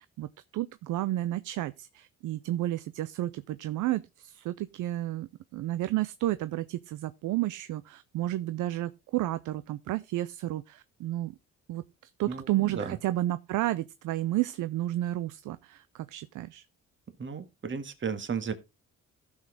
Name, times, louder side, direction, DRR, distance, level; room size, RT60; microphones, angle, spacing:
voice 1, 0.0-11.3 11.7-11.8 12.2-16.6, right 15 dB, 85° right, 0.6 m, -32 dB
voice 2, 12.3-13.0 17.2-18.5, right 6 dB, 40° right, 1.7 m, -34 dB
15.0 x 6.4 x 3.9 m
cardioid pair, 90°, 30 cm